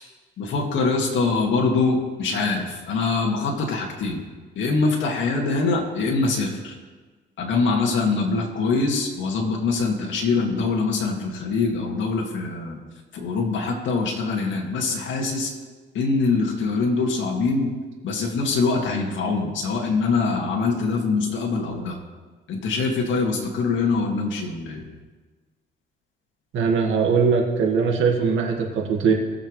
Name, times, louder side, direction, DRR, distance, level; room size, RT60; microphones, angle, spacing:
voice 1, 0.4-4.2 4.6-6.8 7.4-12.8 13.1-15.5 15.9-17.7 18.0-22.0 22.5-24.9, left 4 dB, 75° left, 0 dB, 2.1 m, -23 dB
voice 2, 26.5-29.1, right 5 dB, 80° right, 1 dB, 1.8 m, -21 dB
19.5 x 7.0 x 3.2 m, 1.4 s
cardioid pair, 90°, 20 cm